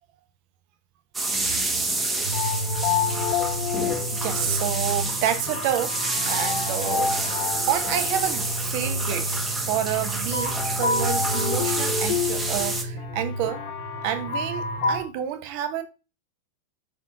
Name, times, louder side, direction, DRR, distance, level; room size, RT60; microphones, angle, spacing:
sound 1, 1.1-12.8, right 2 dB, 15° right, 1.2 m, -28 dB
sound 2, 2.2-15.0, left 3 dB, 45° left, 1.7 m, -28 dB
voice 1, 4.1-6.0 6.3-7.3 7.7-9.3 9.7-10.5 10.8-13.6 14.0-15.8, right 11 dB, 45° right, 1.0 m, -29 dB
6.1 x 4.6 x 3.6 m
figure-of-eight pair, 90°, 0 cm